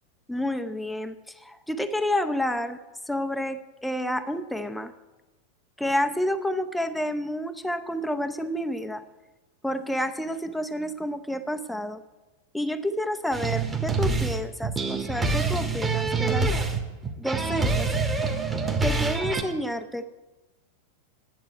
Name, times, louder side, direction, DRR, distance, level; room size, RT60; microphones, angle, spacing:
voice 1, 0.3-2.8 3.1-4.9 5.8-9.0 9.6-12.0 12.5-16.5 17.2-17.9 18.8-20.1, left 1 dB, 5° left, 8 dB, 0.6 m, -29 dB
sound 1, 13.3-19.4, right 3 dB, 15° right, 1.3 m, -26 dB
10.5 x 7.4 x 9.0 m, 1.2 s
figure-of-eight pair, 90°, 0 cm